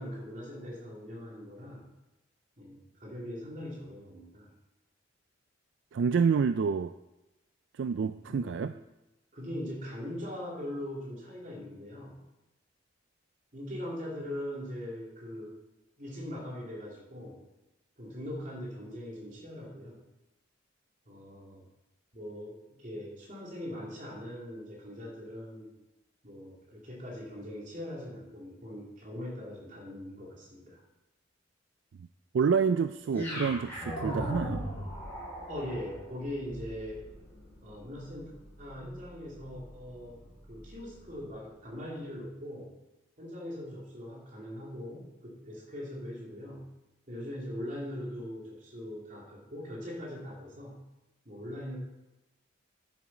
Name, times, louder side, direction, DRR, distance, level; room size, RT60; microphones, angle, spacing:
voice 1, 0.0-1.8 2.6-4.5 8.2-8.8 9.3-12.2 13.5-15.6 16.0-17.4 18.0-20.0 21.1-21.7 22.1-25.7 26.2-30.8 35.5-37.0 37.6-38.3 38.6-42.7 43.2-46.7 47.1-50.8 51.2-51.8, left 1 dB, 40° right, -3 dB, 3.1 m, -41 dB
voice 2, 5.9-6.9 7.7-8.7 32.3-34.7, right 6 dB, 65° right, 11 dB, 0.3 m, -28 dB
sound 1, 33.1-41.3, equal, 10° left, 4.1 m, -40 dB
10.5 x 8.2 x 5.0 m, 0.98 s
head